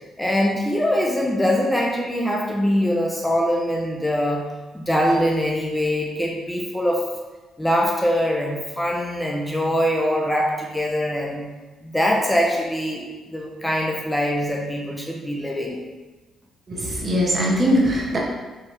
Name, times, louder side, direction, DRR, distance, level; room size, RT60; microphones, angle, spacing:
voice 1, 0.2-4.4 4.7-7.1 7.6-11.4 11.8-15.8, equal, 10° left, -1 dB, 0.5 m, -23 dB
voice 2, 16.7-18.2, equal, 40° right, -2 dB, 1.0 m, -21 dB
4.4 x 3.0 x 3.2 m, 1.2 s
cardioid pair, 90°, 0 cm